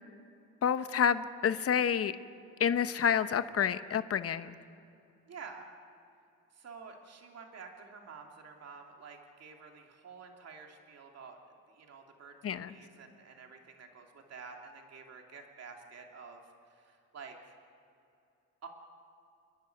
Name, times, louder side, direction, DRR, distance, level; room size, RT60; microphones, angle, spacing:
voice 1, 0.6-2.1 2.6-4.6 12.4-12.8, left 8 dB, 50° left, 12 dB, 1.0 m, -29 dB
voice 2, 5.3-5.7 6.5-11.4 11.7-17.5 18.6-18.7, right 5 dB, 55° right, 2 dB, 2.8 m, -50 dB
29.5 x 10.5 x 9.4 m, 2.7 s
cardioid pair, 90°, 30 cm